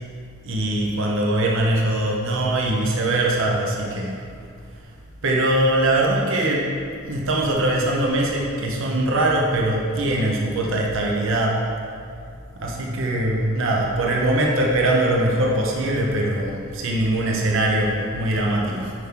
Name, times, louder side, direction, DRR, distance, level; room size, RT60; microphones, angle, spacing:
voice 1, 0.4-4.2 5.2-6.8 7.1-11.6 12.6-18.9, right 1 dB, 60° right, -2 dB, 1.0 m, -22 dB
9.3 x 5.9 x 3.9 m, 2.3 s
head